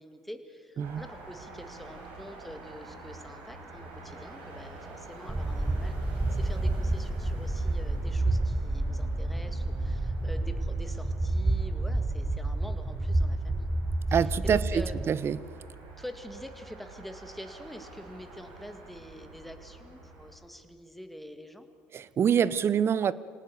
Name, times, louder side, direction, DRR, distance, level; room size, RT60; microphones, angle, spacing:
voice 1, 0.0-13.7 14.1-15.0 16.0-21.7, equal, ahead, 7 dB, 2.1 m, -45 dB
sound 1, 0.8-20.3, right 4 dB, 85° right, 4.8 m, -46 dB
sound 2, 5.3-15.0, right 2 dB, 15° right, 1.2 m, -29 dB
voice 2, 14.1-15.4 21.9-23.1, right 8 dB, 45° right, 19 dB, 0.7 m, -26 dB
25.5 x 18.0 x 7.0 m, 2.3 s
hypercardioid pair, 70°, 6 cm